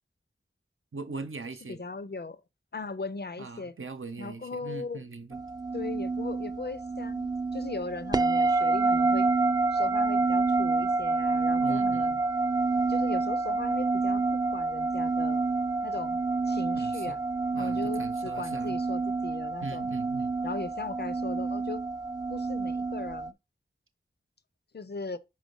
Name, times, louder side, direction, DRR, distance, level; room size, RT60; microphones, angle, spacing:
voice 1, 0.9-1.8 3.4-5.4 11.6-12.2 16.8-17.2 17.5-18.8 19.6-20.3, right 3 dB, 75° right, 0.8 m, -40 dB
voice 2, 1.7-2.4 2.7-3.8 4.2-5.0 5.7-9.3 9.7-12.2 12.9-14.2 14.5-15.4 15.8-17.2 17.6-19.9 20.4-21.8 22.3-23.3 24.7-25.2, left 4 dB, 50° left, 0.6 m, -38 dB
sound 1, 5.3-23.3, right 3 dB, 20° right, 0.4 m, -28 dB
5.1 x 3.9 x 5.3 m
wide cardioid pair, 50°, 21 cm